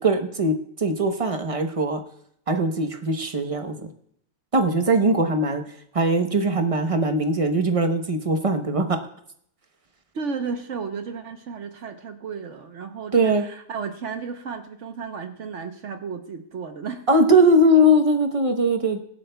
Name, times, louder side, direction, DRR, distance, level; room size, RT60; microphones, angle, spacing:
voice 1, 0.0-2.0 2.5-3.8 4.5-5.6 5.9-9.0 13.1-13.5 17.1-19.0, right 1 dB, 30° right, 6 dB, 0.8 m, -20 dB
voice 2, 10.1-17.0, right 5 dB, 60° right, 6 dB, 1.1 m, -33 dB
23.0 x 8.3 x 2.2 m, 0.68 s
omnidirectional pair, 1.4 m